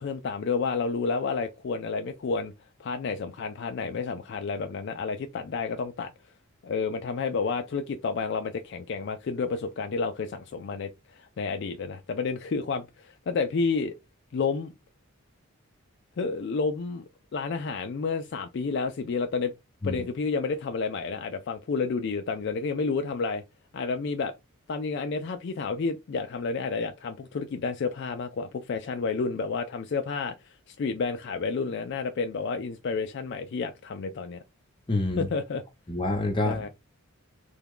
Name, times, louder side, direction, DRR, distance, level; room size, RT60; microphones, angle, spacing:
voice 1, 0.0-2.5 2.8-6.1 6.6-13.9 14.3-14.7 16.2-19.5 19.8-23.4 23.7-24.3 24.7-34.4 35.2-35.6 36.4-36.7, left 4 dB, 50° left, 0.3 m, -30 dB
voice 2, 34.9-35.3 35.9-36.7, left 2 dB, 20° left, 0.8 m, -27 dB
3.4 x 2.2 x 3.6 m
head